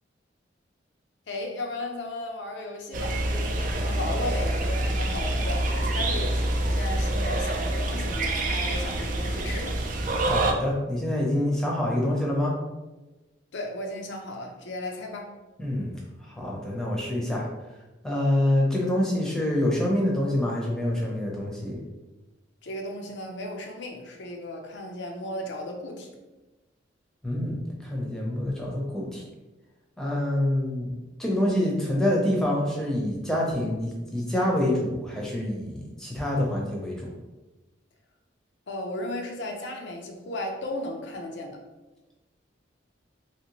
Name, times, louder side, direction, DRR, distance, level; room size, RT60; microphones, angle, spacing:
voice 1, 1.3-9.8 13.5-15.3 22.6-26.1 38.7-41.6, left 1 dB, 70° left, 2 dB, 0.6 m, -35 dB
sound 1, 2.9-10.5, right 1 dB, 45° right, 0.4 m, -26 dB
voice 2, 10.2-12.5 15.6-15.9 16.3-17.4 18.0-21.8 27.2-29.2 30.0-30.9 31.2-37.1, left 1 dB, 5° left, -3 dB, 0.6 m, -26 dB
2.9 x 2.9 x 2.9 m, 1.1 s
head